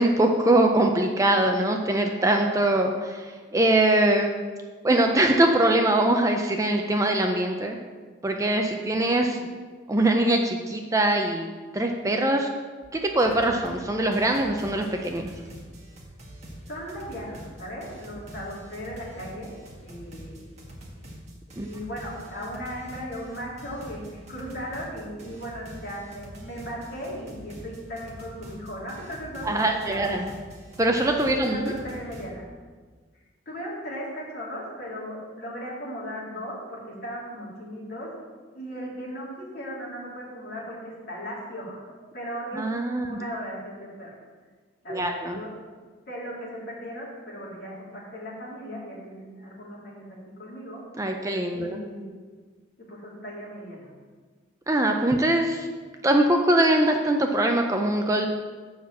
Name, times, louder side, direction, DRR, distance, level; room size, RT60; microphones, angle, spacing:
voice 1, 0.0-4.3 4.8-7.8 8.2-9.4 9.9-11.5 11.7-12.5 12.9-15.3 21.6-21.7 29.4-30.3 30.8-31.7 42.5-43.2 44.9-45.4 51.0-51.8 54.7-55.7 56.0-58.3, right 1 dB, 15° right, 3 dB, 0.5 m, -22 dB
sound 1, 12.8-12.9 13.2-13.8 14.1-32.3, equal, 35° right, 1.6 m, -44 dB
voice 2, 16.7-19.5 19.8-20.5 21.6-30.2 31.4-32.5 33.4-38.1 38.5-42.7 43.1-44.1 44.8-45.5 46.1-50.0 50.4-50.8 51.5-52.1 52.9-53.9, equal, 50° left, -6 dB, 3.1 m, -37 dB
7.2 x 5.8 x 7.3 m, 1.5 s
head